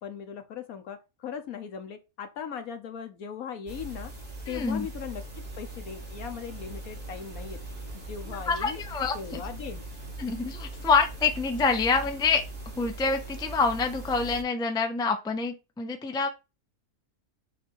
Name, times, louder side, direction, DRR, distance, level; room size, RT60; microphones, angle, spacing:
voice 1, 0.0-4.1 4.5-7.6 7.9-8.8 9.1-9.9, left 7 dB, 70° left, 1.3 m, -39 dB
sound 1, 3.7-14.4, right 2 dB, 50° right, 2.6 m, -40 dB
voice 2, 4.5-4.9 8.5-9.4 10.2-12.4 12.8-16.3, left 4 dB, 5° left, 0.5 m, -26 dB
7.3 x 3.4 x 4.6 m
omnidirectional pair, 1.6 m